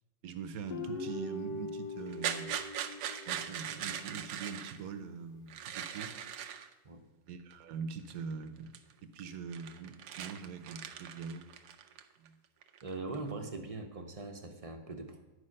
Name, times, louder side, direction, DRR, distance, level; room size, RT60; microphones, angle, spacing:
voice 1, 0.2-2.6 3.3-6.1 7.3-8.7 9.0-11.4 12.2-12.4, right 5 dB, 65° right, 9 dB, 1.2 m, -43 dB
Guitar, 0.7-4.0, left 2 dB, 85° left, 1.5 m, -41 dB
sound 1, 2.1-4.8 5.5-6.7 7.5-7.6 8.1-8.4 8.7-8.9 9.2-12.3 12.6-13.3, right 9 dB, 85° right, 1.2 m, -40 dB
voice 2, 12.8-15.2, right 3 dB, 35° right, 5 dB, 0.6 m, -41 dB
9.8 x 4.9 x 6.4 m, 1.2 s
omnidirectional pair, 1.7 m